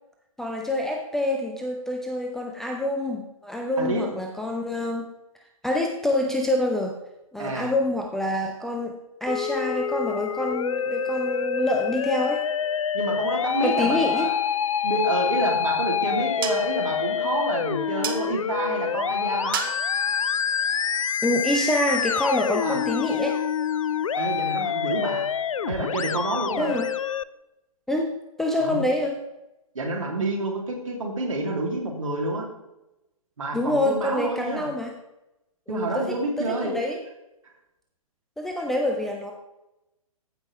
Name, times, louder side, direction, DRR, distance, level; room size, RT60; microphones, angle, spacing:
voice 1, 0.4-5.0 5.6-6.9 7.3-12.4 13.6-14.3 21.2-23.4 26.6-26.9 27.9-28.1 28.4-29.2 33.5-34.9 35.7-37.0 38.4-39.3, left 1 dB, ahead, 2 dB, 0.4 m, -26 dB
voice 2, 7.4-7.7 12.9-14.3 14.8-19.6 22.6-22.8 24.2-25.2 25.7-26.8 28.6-28.8 29.7-32.5 33.4-34.7 35.7-36.7, right 2 dB, 60° right, 0 dB, 2.7 m, -28 dB
Musical instrument, 9.3-27.2, left 8 dB, 60° left, 0.4 m, -27 dB
sound 1, 15.2-21.7, right 9 dB, 35° right, 0.9 m, -38 dB
14.5 x 5.4 x 3.2 m, 0.92 s
figure-of-eight pair, 125°, 19 cm